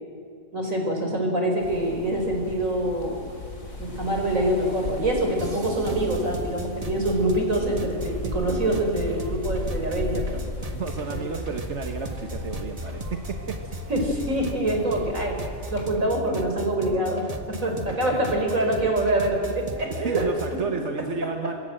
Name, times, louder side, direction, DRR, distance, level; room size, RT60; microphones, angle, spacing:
voice 1, 0.5-3.2 3.8-10.4 11.1-11.2 13.9-15.4 15.7-17.2 17.6-20.3, right 1 dB, 70° right, 2 dB, 5.3 m, -25 dB
sound 1, 1.6-15.8, left 2 dB, 75° left, 5.0 m, -36 dB
sound 2, 5.4-20.6, right 1 dB, 25° right, 1.7 m, -37 dB
voice 2, 10.7-13.6 17.8-18.2 19.9-21.5, right 4 dB, 55° right, 4 dB, 1.6 m, -32 dB
26.0 x 23.0 x 7.8 m, 2.2 s
omnidirectional pair, 1.4 m